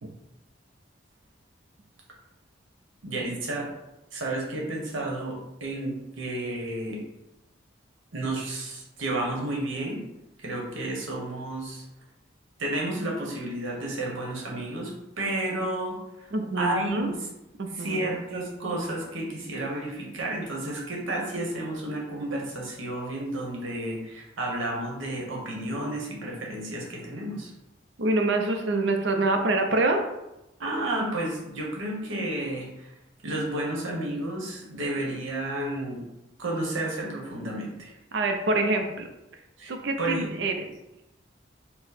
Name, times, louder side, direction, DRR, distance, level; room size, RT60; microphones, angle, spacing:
voice 1, 3.0-3.7 4.1-7.0 8.1-10.0 10.4-11.8 12.6-16.3 16.6-17.3 17.7-27.5 30.6-32.9 33.2-36.1 36.4-37.9 39.6-39.7 40.0-40.3, right 1 dB, 85° right, -1 dB, 1.1 m, -31 dB
voice 2, 16.3-17.1 17.6-18.0 28.0-30.0 38.1-39.1 39.7-40.7, right 2 dB, 65° right, 5 dB, 0.5 m, -26 dB
4.5 x 2.0 x 4.1 m, 0.93 s
head